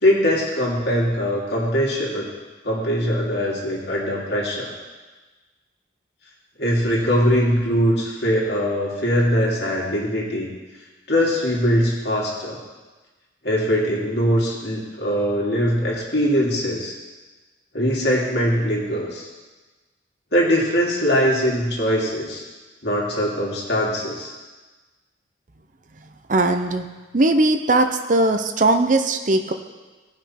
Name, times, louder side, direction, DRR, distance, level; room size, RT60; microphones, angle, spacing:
voice 1, 0.0-2.2 2.6-4.7 6.6-10.5 11.1-12.6 13.4-16.9 17.7-19.3 20.3-22.4 22.8-24.3, equal, 60° left, -4 dB, 2.6 m, -21 dB
voice 2, 26.3-26.8 27.1-29.5, right 2 dB, 40° right, 7 dB, 0.6 m, -19 dB
18.0 x 6.0 x 4.4 m, 1.2 s
head